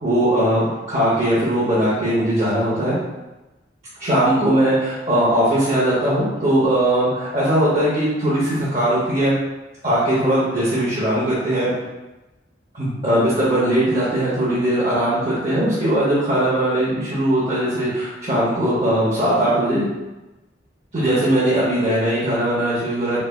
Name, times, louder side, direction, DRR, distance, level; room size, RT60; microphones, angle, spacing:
voice 1, 0.0-3.0 4.0-9.3 9.8-11.7 12.7-19.9 20.9-23.2, right 1 dB, 35° right, -9 dB, 0.7 m, -19 dB
3.3 x 3.1 x 2.2 m, 1.1 s
head